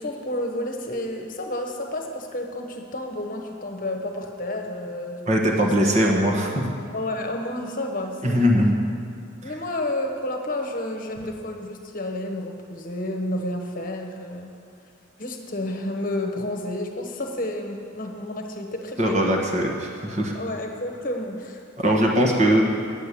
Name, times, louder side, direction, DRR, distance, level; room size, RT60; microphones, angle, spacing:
voice 1, 0.0-5.2 6.9-8.5 9.4-14.5 15.2-19.3 20.3-21.6, left 1 dB, 45° left, 3 dB, 1.1 m, -30 dB
voice 2, 5.3-6.6 8.2-8.7 19.0-20.4 21.8-22.6, equal, 35° right, 0 dB, 1.4 m, -20 dB
9.2 x 7.8 x 8.4 m, 2.3 s
head